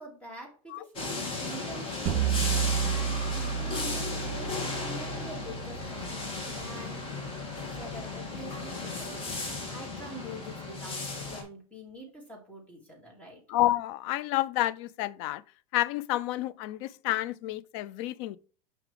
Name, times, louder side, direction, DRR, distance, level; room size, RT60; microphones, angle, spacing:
voice 1, 0.0-2.2 2.7-7.0 7.6-13.4, right 1 dB, 10° left, 2.5 m, -46 dB
sound 1, 1.0-11.4, left 3 dB, 30° left, 2.2 m, -35 dB
sound 2, 2.1-7.1, right 8 dB, 40° right, 2.5 m, -32 dB
voice 2, 13.5-15.4 15.7-18.4, left 16 dB, 50° left, 0.4 m, -29 dB
6.0 x 5.7 x 3.4 m
supercardioid pair, 140°, 18 cm